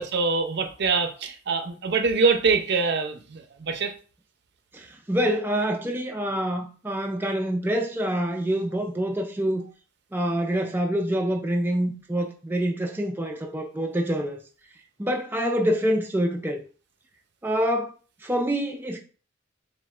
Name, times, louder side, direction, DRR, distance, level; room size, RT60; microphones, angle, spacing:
voice 1, 0.0-3.9, right 4 dB, 55° right, 0.5 m, -24 dB
voice 2, 4.7-9.6 10.1-14.4 15.0-16.6 17.4-17.9 18.2-19.0, equal, 10° right, 0.3 m, -26 dB
7.3 x 2.4 x 2.4 m
head